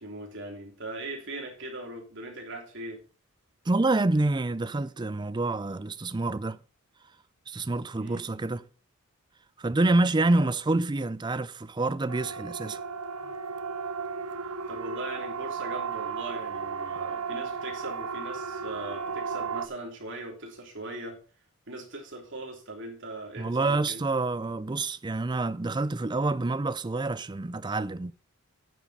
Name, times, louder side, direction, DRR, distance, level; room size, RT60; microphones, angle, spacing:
voice 1, 0.0-3.0 8.0-8.3 10.2-10.5 14.7-21.2 21.7-24.0, right 2 dB, 55° right, 3.2 m, -40 dB
voice 2, 3.7-6.6 7.5-8.7 9.6-12.8 23.4-28.1, right 2 dB, 20° right, 0.4 m, -27 dB
Siren, 12.1-19.7, right 5 dB, 85° right, 1.0 m, -34 dB
9.2 x 7.3 x 5.5 m
head